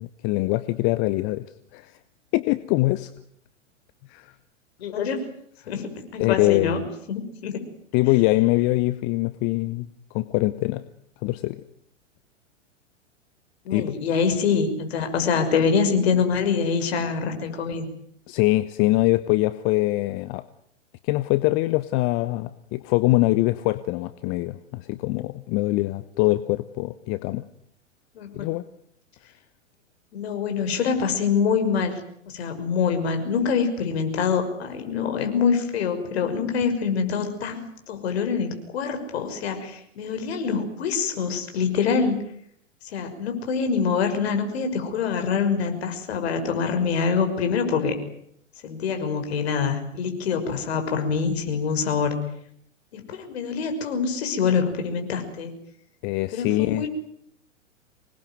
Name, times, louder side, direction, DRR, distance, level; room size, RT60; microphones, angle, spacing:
voice 1, 0.0-1.4 1.7-1.9 2.3-3.1 4.1-4.3 6.2-6.8 7.9-9.9 10.1-10.8 11.2-11.6 13.7-13.9 18.3-20.4 21.0-27.4 28.3-28.6 56.0-56.9, left 19 dB, 30° left, 14 dB, 1.0 m, -23 dB
voice 2, 4.8-5.2 5.7-6.8 7.1-7.6 13.6-17.8 28.1-28.5 30.1-42.2 42.9-47.9 48.6-52.2 52.9-55.5 56.3-56.9, left 6 dB, 55° left, 6 dB, 6.1 m, -25 dB
26.0 x 20.5 x 9.5 m, 0.69 s
figure-of-eight pair, 105°, 37 cm